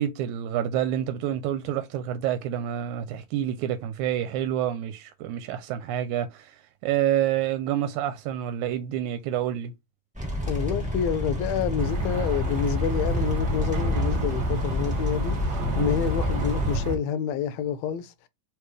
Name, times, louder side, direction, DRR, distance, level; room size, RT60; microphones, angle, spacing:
voice 1, 0.0-6.6 6.8-9.7, right 11 dB, 85° right, 2.0 m, -28 dB
sound 1, 10.1-16.8, equal, 10° right, 0.3 m, -29 dB
voice 2, 10.4-18.1, left 8 dB, 80° left, 1.7 m, -28 dB
sound 2, 11.8-17.0, right 1 dB, 60° right, 2.2 m, -30 dB
4.4 x 3.4 x 3.1 m
omnidirectional pair, 3.4 m